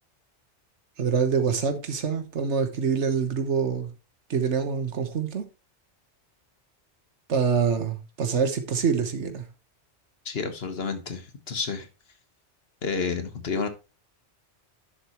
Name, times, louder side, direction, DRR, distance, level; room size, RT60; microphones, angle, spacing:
voice 1, 1.0-3.9 4.3-5.5 7.3-9.4, right 6 dB, 75° right, 1.4 m, -25 dB
voice 2, 10.2-11.9 12.8-13.7, left 5 dB, 60° left, 1.4 m, -30 dB
11.0 x 6.7 x 3.0 m
omnidirectional pair, 1.2 m